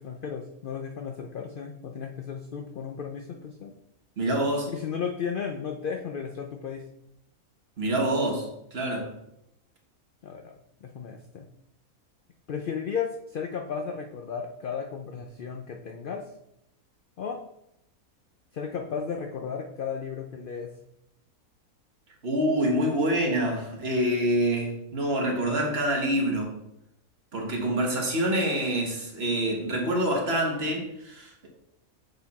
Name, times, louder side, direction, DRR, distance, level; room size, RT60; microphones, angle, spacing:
voice 1, 0.0-3.7 4.7-6.9 10.2-11.5 12.5-16.3 17.2-17.4 18.5-20.7, left 6 dB, 70° left, 3 dB, 0.5 m, -34 dB
voice 2, 4.2-4.7 7.8-9.1 22.2-26.6 27.3-31.5, right 1 dB, 45° right, 1 dB, 1.4 m, -26 dB
6.7 x 4.2 x 4.2 m, 0.82 s
omnidirectional pair, 1.5 m